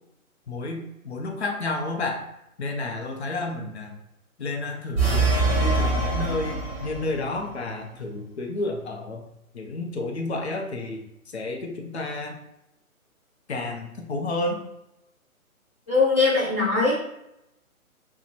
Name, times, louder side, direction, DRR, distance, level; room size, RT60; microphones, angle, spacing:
voice 1, 0.5-2.2 2.6-4.0 4.4-9.2 9.5-11.0 11.3-12.4 13.5-14.6, left 2 dB, 50° left, 2 dB, 0.7 m, -31 dB
sound 1, 4.9-7.2, right 3 dB, 10° right, 0.6 m, -23 dB
voice 2, 15.9-16.9, left 3 dB, 10° left, -11 dB, 1.3 m, -21 dB
3.0 x 2.2 x 4.1 m, 0.84 s
hypercardioid pair, 155°, 43 cm